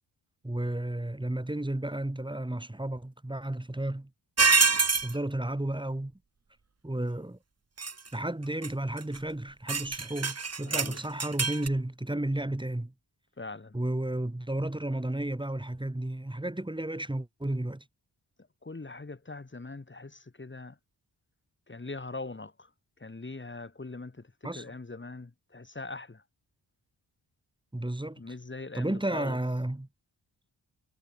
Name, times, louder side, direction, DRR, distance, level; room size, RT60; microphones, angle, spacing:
voice 1, 0.4-4.1 5.0-6.1 6.8-7.4 8.1-12.9 13.7-17.8 24.4-24.6 27.7-28.3 28.7-29.9, right 1 dB, 10° right, 5.3 m, -32 dB
sound 1, 4.4-5.1 7.8-8.1 8.6-8.7 9.0-9.2 9.7-11.7, right 4 dB, 35° right, 2.1 m, -25 dB
voice 2, 10.6-11.0 13.4-13.8 18.6-20.8 21.7-22.7 23.0-26.2 28.2-29.4, left 3 dB, 25° left, 5.0 m, -41 dB
wide cardioid pair, 160°, 43 cm